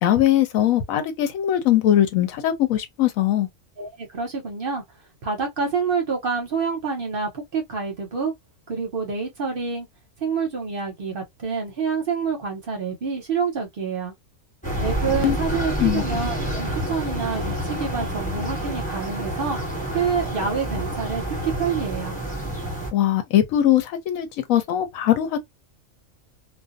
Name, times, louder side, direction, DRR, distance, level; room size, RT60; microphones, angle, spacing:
voice 1, 0.0-3.5 15.2-15.4 15.8-16.0 22.9-25.4, left 12 dB, 80° left, 1.0 m, -20 dB
voice 2, 3.8-4.8 5.2-8.3 8.7-9.9 10.2-14.1 14.8-19.6 19.9-22.2, right 5 dB, 50° right, 0.8 m, -27 dB
sound 1, 14.6-22.9, equal, 5° left, 1.2 m, -28 dB
2.5 x 2.2 x 2.4 m
omnidirectional pair, 1.4 m